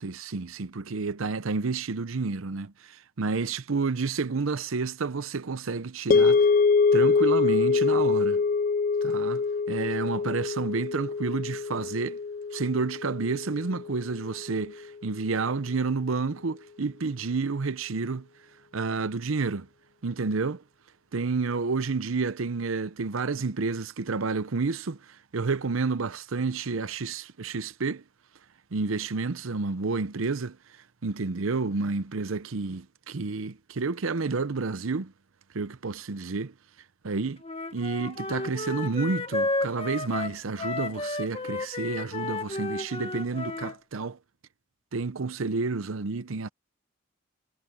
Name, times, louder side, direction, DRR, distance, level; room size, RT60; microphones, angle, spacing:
voice 1, 0.0-6.4 6.9-8.4 9.0-12.2 12.5-18.3 18.7-19.7 20.0-20.6 21.1-28.0 28.7-30.6 31.0-35.1 35.5-36.5 37.0-37.4 37.7-44.2 44.9-46.5, right 4 dB, 85° right, 0.7 m, -30 dB
sound 1, 6.1-14.4, left 4 dB, 45° left, 0.4 m, -24 dB
Wind instrument woodwind instrument, 37.4-43.8, left 2 dB, 30° left, 1.6 m, -32 dB
head